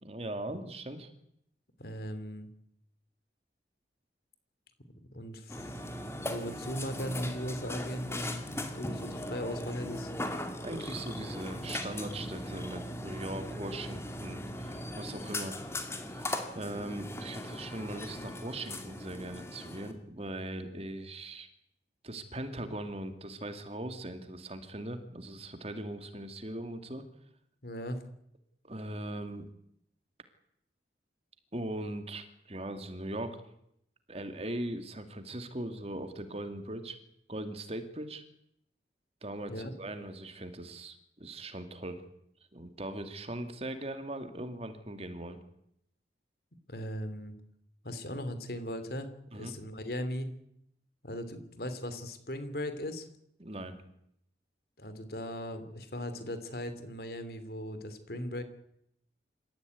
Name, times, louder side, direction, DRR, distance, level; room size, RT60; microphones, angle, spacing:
voice 1, 0.0-1.1 10.6-15.6 16.1-21.5 22.0-27.0 28.6-29.5 31.5-33.4 34.1-37.0 37.3-38.2 39.2-42.0 42.5-45.4 49.3-49.5 53.4-53.8, right 1 dB, 35° right, 8 dB, 2.3 m, -40 dB
voice 2, 1.8-2.5 5.1-5.8 6.2-8.4 8.7-10.1 27.6-28.0 39.5-39.7 46.7-47.3 47.8-49.1 49.3-50.3 51.0-53.1 54.8-58.4, equal, 60° left, 10 dB, 3.0 m, -38 dB
Burping eructation, 5.5-19.9, left 1 dB, 15° left, 2.4 m, -39 dB
26.5 x 15.0 x 9.5 m, 0.76 s
head